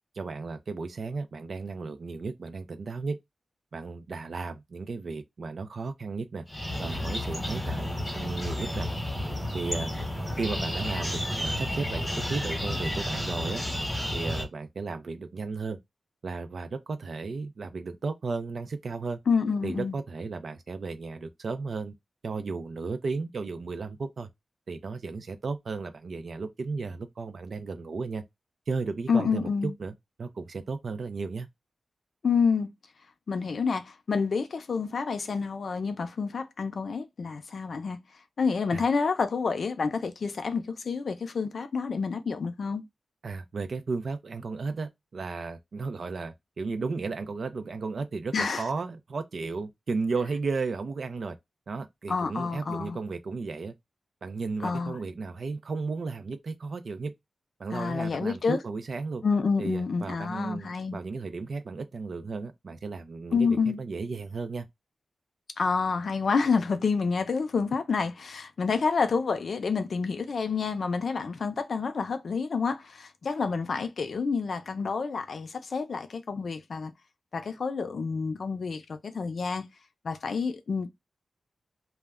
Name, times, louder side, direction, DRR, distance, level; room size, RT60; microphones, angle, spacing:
voice 1, 0.1-3.2 3.7-6.5 6.8-8.9 9.5-9.9 10.4-13.6 14.1-15.8 16.2-19.2 19.6-21.9 22.2-24.3 24.7-28.2 28.7-29.9 30.2-31.5 38.7-38.8 43.2-51.4 51.7-53.7 54.2-57.1 57.6-59.2 59.6-64.7, right 4 dB, 65° right, 0.4 m, -34 dB
sound 1, 6.5-14.4, left 1 dB, 10° left, 0.9 m, -31 dB
voice 2, 19.3-20.0 29.1-29.7 32.2-32.7 33.3-38.0 38.4-42.8 48.3-48.6 52.1-53.0 54.6-55.0 57.7-58.6 59.2-61.0 63.3-63.8 65.6-76.9 77.3-79.6 80.0-80.9, left 5 dB, 65° left, 0.5 m, -28 dB
2.2 x 2.1 x 3.4 m
wide cardioid pair, 120°, 0 cm